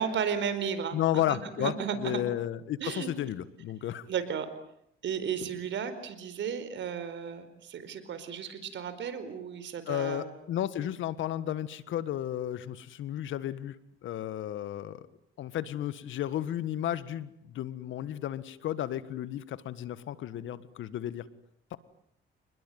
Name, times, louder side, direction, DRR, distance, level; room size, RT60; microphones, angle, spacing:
voice 1, 0.0-1.0 1.3-2.2 2.8-3.1 4.1-4.5 5.0-10.3, right 7 dB, 70° right, 11 dB, 4.7 m, -34 dB
voice 2, 0.9-1.7 2.0-4.1 9.9-13.8 14.0-15.0 15.4-21.2 21.7-21.8, left 11 dB, 80° left, 15 dB, 1.6 m, -33 dB
28.5 x 21.0 x 9.3 m, 0.72 s
cardioid pair, 90°, 20 cm